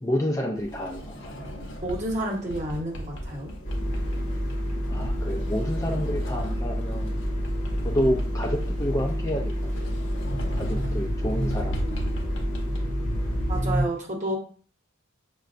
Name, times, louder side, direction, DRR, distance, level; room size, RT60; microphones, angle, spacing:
voice 1, 0.0-1.5 4.9-7.1 7.8-9.7 10.5-11.8, equal, 15° left, 0 dB, 0.4 m, -29 dB
Sliding door, 0.5-12.8, equal, 60° left, 0.8 m, -38 dB
voice 2, 1.8-3.5 13.5-14.4, right 1 dB, 35° right, -1 dB, 0.9 m, -30 dB
sound 1, 3.6-13.8, equal, 35° left, 0.9 m, -28 dB
5.6 x 2.2 x 2.5 m, 0.43 s
head